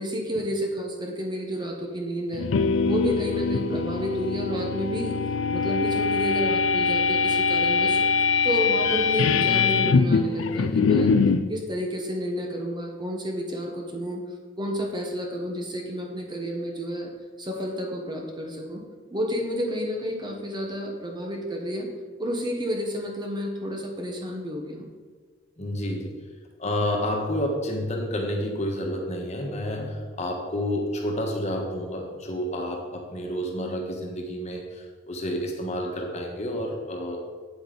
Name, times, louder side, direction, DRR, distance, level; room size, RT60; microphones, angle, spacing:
voice 1, 0.0-2.5 2.8-5.2 5.5-8.0 8.4-11.1 11.5-14.2 14.6-17.1 17.4-18.8 19.1-21.9 22.2-24.9, equal, 20° right, 1 dB, 1.1 m, -30 dB
sound 1, 2.3-11.5, left 5 dB, 80° left, 0.4 m, -23 dB
voice 2, 25.6-26.1 26.6-37.2, equal, 35° left, 1 dB, 1.4 m, -29 dB
8.5 x 7.9 x 4.0 m, 1.5 s
head